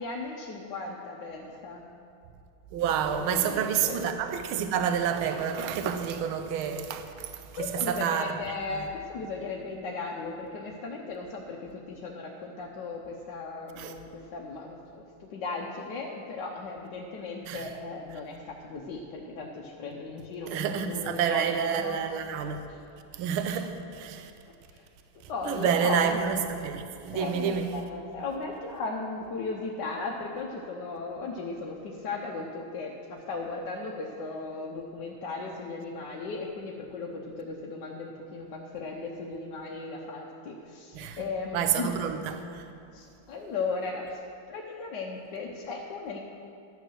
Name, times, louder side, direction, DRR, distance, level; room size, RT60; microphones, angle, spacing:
voice 1, 0.0-1.8 3.1-4.0 7.5-22.0 22.6-22.8 24.7-24.9 25.3-26.2 27.1-42.0 42.9-44.2 44.5-46.2, left 3 dB, 60° left, 1.3 m, -36 dB
voice 2, 2.7-7.3 7.6-8.3 13.8-13.9 17.5-17.6 20.5-22.6 23.2-24.3 25.5-27.7 40.9-41.2 41.5-42.6, right 8 dB, 75° right, 1.6 m, -29 dB
12.5 x 8.6 x 6.4 m
omnidirectional pair, 2.4 m